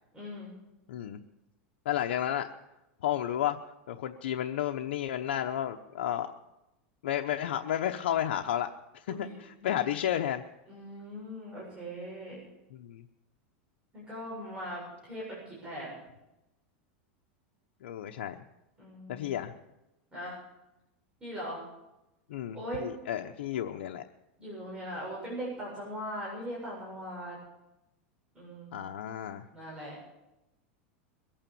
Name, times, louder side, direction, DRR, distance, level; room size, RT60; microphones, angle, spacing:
voice 1, 0.1-0.5 9.1-9.3 9.6-9.7 10.7-12.4 13.9-15.9 18.8-19.3 20.1-20.4 21.2-21.6 22.5-22.8 24.4-27.4 28.3-28.8 29.5-30.0, equal, 15° right, -6 dB, 7.5 m, -40 dB
voice 2, 0.9-1.2 1.8-2.5 3.0-3.6 3.9-6.3 7.0-8.7 8.9-10.4 12.7-13.0 17.8-18.4 19.1-19.5 22.3-24.0 28.7-29.4, left 11 dB, 85° left, 4 dB, 0.9 m, -32 dB
22.0 x 8.9 x 7.0 m, 0.93 s
supercardioid pair, 140°, 6 cm